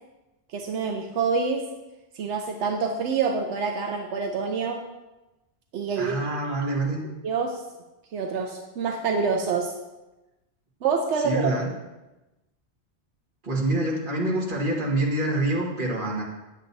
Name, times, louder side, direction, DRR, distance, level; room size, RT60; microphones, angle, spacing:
voice 1, 0.5-1.7 2.1-4.9 5.7-6.3 7.2-7.6 8.1-9.7 10.8-11.7, right 5 dB, 85° right, 3 dB, 1.0 m, -26 dB
voice 2, 6.0-7.0 11.2-11.7 13.4-16.2, right 2 dB, 50° right, -3 dB, 1.7 m, -26 dB
9.2 x 7.5 x 2.6 m, 1.0 s
omnidirectional pair, 1.1 m